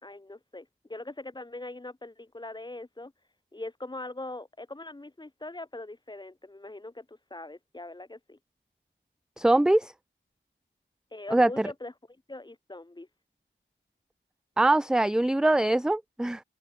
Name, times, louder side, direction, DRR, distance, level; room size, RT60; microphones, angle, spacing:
voice 1, 0.0-3.1 3.5-8.4 11.1-11.9 12.3-13.1, left 2 dB, 20° left, 2.5 m, -41 dB
voice 2, 9.4-9.9 11.3-11.7 14.6-16.4, right 2 dB, 5° right, 0.3 m, -23 dB
wide cardioid pair, 80°, 21 cm